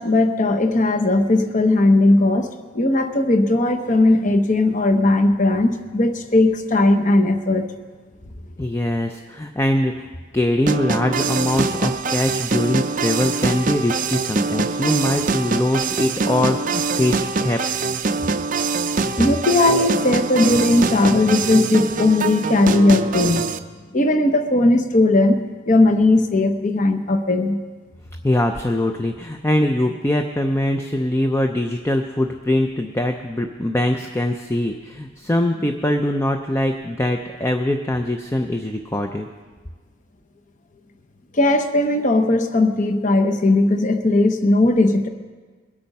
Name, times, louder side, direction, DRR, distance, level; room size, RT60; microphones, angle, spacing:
voice 1, 0.0-2.5 2.7-7.7 19.2-23.5 23.9-25.4 25.7-27.6 41.3-45.1, left 2 dB, 35° left, 7 dB, 0.8 m, -17 dB
voice 2, 8.6-17.6 28.2-39.3, left 1 dB, 10° left, 5 dB, 0.5 m, -22 dB
sound 1, 10.7-23.6, right 4 dB, 40° right, 0.5 m, -23 dB
21.5 x 8.7 x 5.4 m, 1.4 s
head